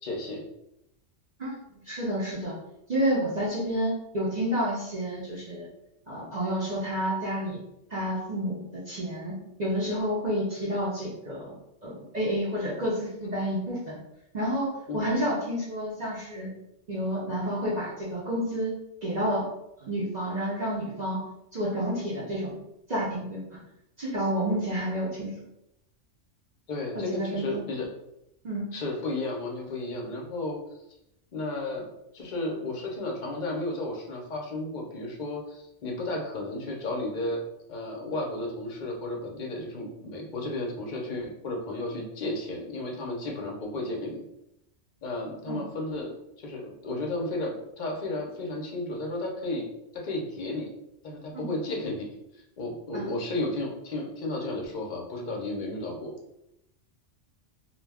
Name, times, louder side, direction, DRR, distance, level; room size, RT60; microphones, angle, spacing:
voice 1, 0.0-0.4 14.9-15.1 26.7-27.9 28.7-30.6 31.3-31.9 32.1-37.4 37.7-44.3 45.0-49.7 49.9-50.7 51.0-52.1 52.6-56.1, left 2 dB, 50° left, 0 dB, 0.6 m, -33 dB
voice 2, 1.9-2.5 2.9-5.7 6.1-7.6 7.9-11.5 11.8-14.0 14.3-16.5 16.9-18.7 19.0-19.4 19.8-21.2 21.5-22.5 22.9-23.6 24.0-25.3 26.9-27.6 28.4-28.6 45.5-45.6 51.3-51.5 52.9-53.1, equal, 45° right, -7 dB, 0.6 m, -30 dB
2.4 x 2.2 x 3.3 m, 0.84 s
omnidirectional pair, 1.3 m